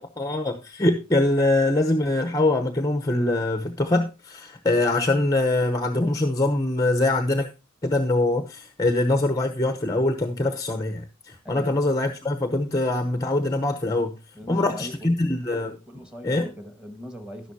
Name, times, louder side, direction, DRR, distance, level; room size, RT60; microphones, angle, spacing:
voice 1, 0.2-7.5 7.8-14.2 14.5-15.8 16.2-16.5, left 2 dB, 15° left, 0.9 m, -23 dB
voice 2, 11.4-11.8 14.3-15.1 15.9-17.5, equal, 5° right, 1.7 m, -40 dB
12.5 x 11.0 x 2.8 m
head